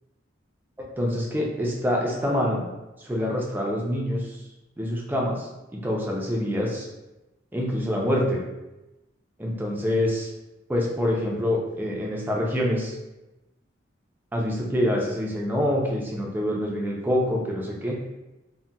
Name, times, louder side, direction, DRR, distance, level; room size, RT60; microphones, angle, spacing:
voice 1, 0.8-2.7 3.0-4.4 4.8-6.9 7.5-8.4 9.4-10.3 10.7-12.9 14.3-18.0, left 1 dB, 10° right, -2 dB, 0.4 m, -26 dB
3.9 x 2.1 x 2.2 m, 1.0 s
head